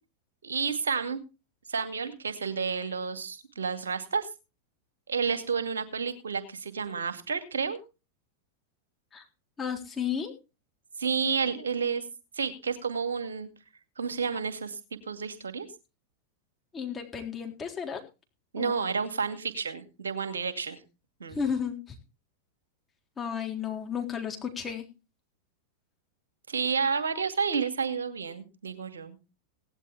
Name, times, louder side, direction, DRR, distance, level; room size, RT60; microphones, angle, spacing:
voice 1, 0.4-1.2 1.7-4.3 5.1-7.8 11.0-12.0 12.4-13.5 14.0-14.8 15.1-15.7 18.5-20.8 21.2-21.4 26.5-29.2, right 5 dB, 70° right, 9 dB, 2.2 m, -30 dB
voice 2, 9.6-10.3 16.7-18.0 18.6-18.7 21.3-21.8 23.2-24.8, left 7 dB, 15° left, 2 dB, 3.7 m, -33 dB
17.5 x 11.5 x 3.5 m, 0.30 s
figure-of-eight pair, 90°, 0 cm